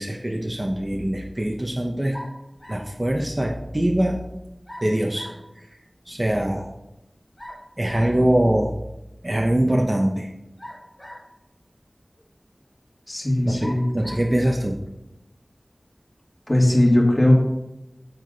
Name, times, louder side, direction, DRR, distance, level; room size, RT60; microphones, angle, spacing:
voice 1, 0.0-2.2 2.7-4.3 4.8-5.4 6.1-6.7 7.8-8.7 9.2-10.3 13.4-13.7 13.9-14.8, right 1 dB, 30° right, 0 dB, 0.9 m, -23 dB
sound 1, 2.1-3.0 4.7-5.5 7.4-8.2 10.6-11.4 12.2-12.3 13.6-14.3, equal, 25° left, 1.3 m, -41 dB
voice 2, 13.1-13.8 16.5-17.4, left 1 dB, 40° left, -2 dB, 2.5 m, -18 dB
7.8 x 7.4 x 4.0 m, 0.90 s
wide cardioid pair, 55°, 0 cm